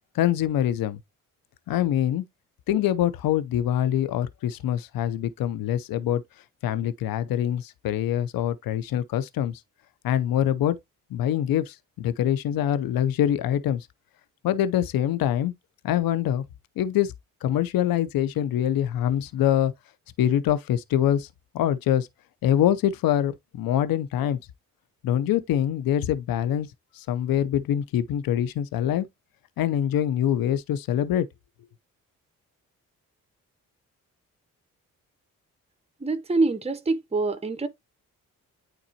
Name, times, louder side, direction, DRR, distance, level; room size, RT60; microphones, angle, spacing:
voice 1, 0.1-1.0 1.7-2.2 2.7-6.2 6.6-9.6 10.0-10.8 11.1-13.9 14.4-15.5 15.8-16.4 16.8-17.1 17.4-19.7 20.2-21.3 21.5-22.1 22.4-24.4 25.0-26.7 27.0-29.1 29.6-31.2, left 11 dB, 75° left, 0.7 m, -24 dB
voice 2, 36.0-37.7, right 3 dB, 15° right, 1.0 m, -25 dB
8.9 x 4.0 x 2.8 m
supercardioid pair, 55°, 35 cm